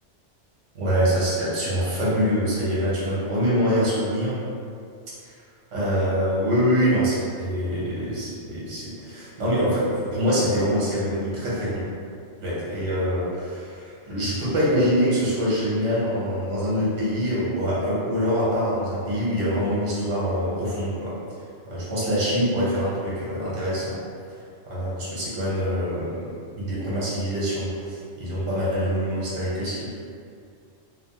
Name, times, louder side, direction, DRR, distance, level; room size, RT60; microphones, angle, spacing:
voice 1, 0.7-4.4 5.2-5.3 5.7-11.8 12.4-21.1 21.7-24.0 24.7-26.2 26.5-30.1, equal, 75° right, -8 dB, 1.1 m, -24 dB
2.9 x 2.0 x 2.8 m, 2.3 s
omnidirectional pair, 1.2 m